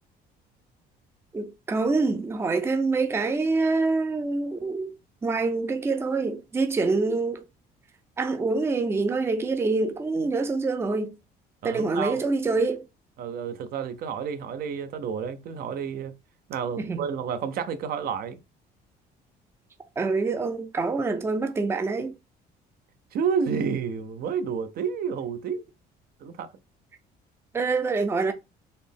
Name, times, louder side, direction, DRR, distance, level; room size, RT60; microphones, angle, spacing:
voice 1, 1.3-5.0 5.2-7.4 8.2-11.1 11.6-12.8 16.8-17.0 20.0-22.2 27.5-28.3, right 3 dB, 15° right, 0.4 m, -26 dB
voice 2, 11.6-12.2 13.2-16.1 16.5-18.4 23.1-25.6 26.2-26.5, right 6 dB, 60° right, 0.5 m, -30 dB
4.0 x 2.0 x 3.4 m
cardioid pair, 110°, 17 cm